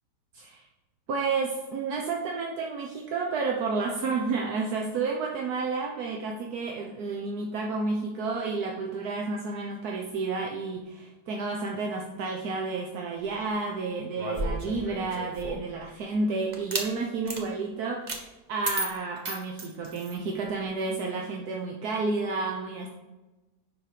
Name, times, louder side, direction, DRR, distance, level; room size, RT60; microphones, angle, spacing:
voice 1, 1.1-22.9, right 4 dB, 75° right, 0 dB, 1.4 m, -31 dB
sound 1, 14.2-15.7 16.5-16.9 17.3-17.4 18.1-18.2 18.6-20.2, right 2 dB, 30° right, 1.1 m, -33 dB
10.0 x 4.5 x 5.0 m, 1.1 s
omnidirectional pair, 1.7 m